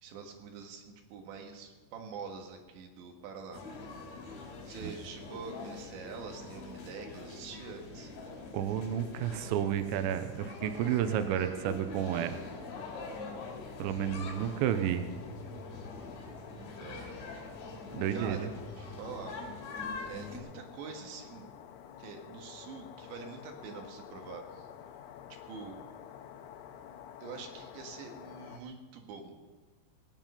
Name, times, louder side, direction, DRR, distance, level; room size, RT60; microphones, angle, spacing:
voice 1, 0.0-3.6 4.7-8.1 15.7-15.9 16.5-17.1 18.1-19.4 20.0-21.5 22.0-24.7 25.5-25.8 27.2-29.3, right 5 dB, 65° right, 3 dB, 3.6 m, -45 dB
sound 1, 3.5-20.4, left 3 dB, 65° left, 4.7 m, -44 dB
voice 2, 8.5-12.4 13.8-15.1 17.9-18.5, right 10 dB, 90° right, 10 dB, 2.6 m, -31 dB
sound 2, 12.3-28.6, left 10 dB, 90° left, 3.5 m, -50 dB
21.0 x 9.1 x 5.6 m, 1.4 s
omnidirectional pair, 6.0 m